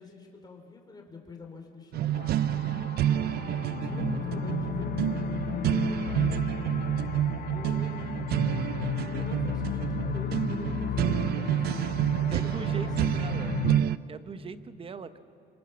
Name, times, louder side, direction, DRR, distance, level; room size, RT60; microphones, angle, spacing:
voice 1, 0.0-2.3 3.2-6.4 7.4-8.2 9.0-13.8, left 3 dB, 25° left, 2 dB, 4.4 m, -47 dB
sound 1, 1.9-14.0, right 11 dB, 70° right, 0.6 m, -29 dB
sound 2, 2.1-13.8, left 11 dB, 55° left, 0.9 m, -35 dB
voice 2, 12.3-13.5 14.1-15.2, right 5 dB, 35° right, 12 dB, 1.1 m, -40 dB
29.0 x 25.5 x 7.2 m, 2.6 s
cardioid pair, 110°, 17 cm